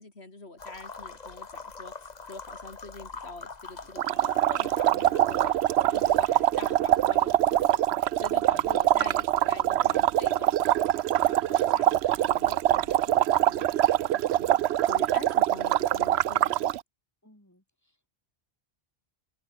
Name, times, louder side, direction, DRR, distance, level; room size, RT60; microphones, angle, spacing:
voice 1, 0.0-5.5 5.8-11.9 12.2-14.6 14.9-16.7, left 2 dB, 85° left, 4.1 m, -45 dB
sound 1, 0.6-10.4, left 4 dB, 40° left, 1.4 m, -46 dB
sound 2, 4.0-16.8, right 12 dB, 85° right, 0.8 m, -24 dB
voice 2, 11.7-12.0 17.2-18.1, left 1 dB, 15° left, 5.1 m, -60 dB
omnidirectional pair, 1.1 m